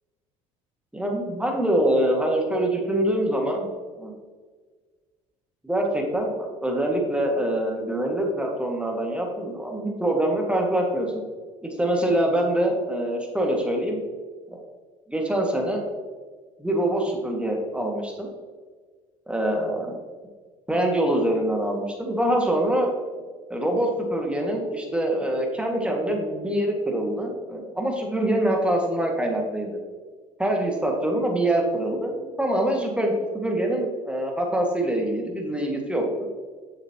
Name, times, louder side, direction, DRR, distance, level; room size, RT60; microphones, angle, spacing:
voice 1, 0.9-3.7 4.0-4.1 5.6-11.2 11.6-14.0 14.5-14.6 15.1-15.8 16.6-18.3 19.3-20.0 20.7-22.9 23.5-29.8 30.4-36.3, right 1 dB, 5° right, 0 dB, 1.8 m, -24 dB
7.3 x 7.1 x 2.9 m, 1.5 s
hypercardioid pair, 65°, 17 cm